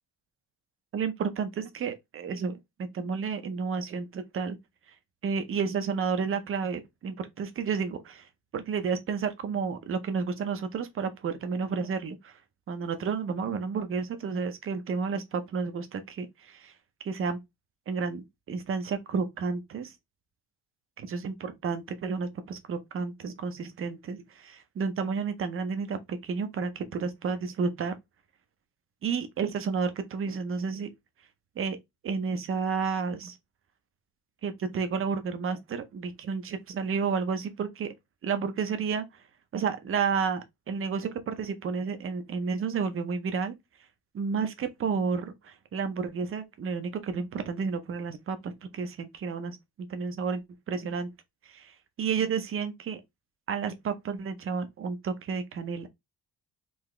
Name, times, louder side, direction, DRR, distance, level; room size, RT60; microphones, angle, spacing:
voice 1, 0.9-2.5 2.8-4.6 5.2-8.3 8.5-12.4 12.7-16.7 17.0-17.4 17.9-19.9 21.0-27.9 29.0-30.9 31.6-31.8 32.0-33.4 34.4-37.9 38.2-39.2 39.5-43.5 44.1-51.1 51.5-53.0 53.5-55.9, right 5 dB, 35° right, 0.6 m, -31 dB
3.9 x 2.8 x 3.1 m
cardioid pair, 175°, 40 cm